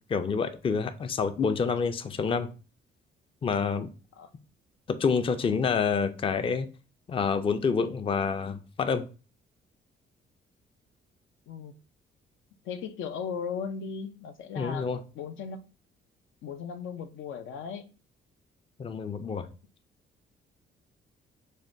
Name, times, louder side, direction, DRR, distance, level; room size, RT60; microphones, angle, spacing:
voice 1, 0.1-2.5 3.4-3.9 5.0-6.7 7.1-9.0 14.6-15.0 18.8-19.5, left 5 dB, 25° left, 0.4 m, -27 dB
voice 2, 12.6-14.9 15.1-15.6 16.4-17.9, left 6 dB, 80° left, 0.5 m, -37 dB
6.4 x 2.2 x 2.6 m
cardioid pair, 90°, 20 cm